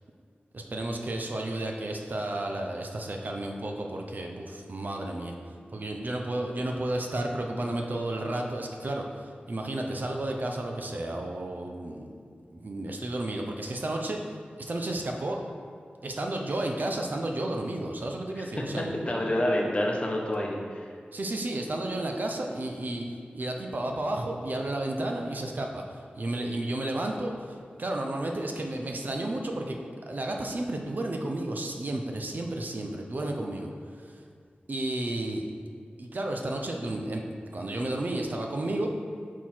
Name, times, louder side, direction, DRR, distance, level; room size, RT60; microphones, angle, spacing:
voice 1, 0.5-5.3 5.7-12.3 12.5-14.2 14.6-15.4 16.0-18.9 21.1-23.0 23.3-33.7 34.0-34.2 34.7-35.4 36.0-37.2 37.5-38.9, right 1 dB, 55° right, 2 dB, 0.6 m, -32 dB
voice 2, 19.1-20.9, left 1 dB, 35° left, 0 dB, 0.9 m, -28 dB
5.8 x 4.6 x 4.3 m, 2.2 s
wide cardioid pair, 90°, 4 cm